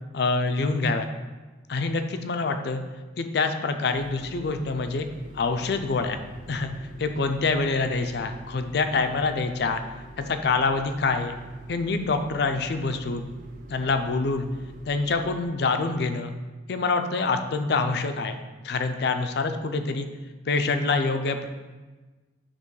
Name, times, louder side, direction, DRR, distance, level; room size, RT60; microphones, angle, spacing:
voice 1, 0.1-1.1 1.7-2.8 3.2-5.1 5.3-6.2 6.5-6.7 7.0-9.8 10.2-11.4 11.7-13.3 13.7-14.5 14.9-16.3 16.7-18.4 18.6-20.1 20.5-21.5, left 3 dB, 60° left, 7 dB, 0.4 m, -26 dB
sound 1, 3.9-15.4, right 1 dB, 45° right, 0.6 m, -46 dB
6.7 x 3.1 x 4.6 m, 1.3 s
head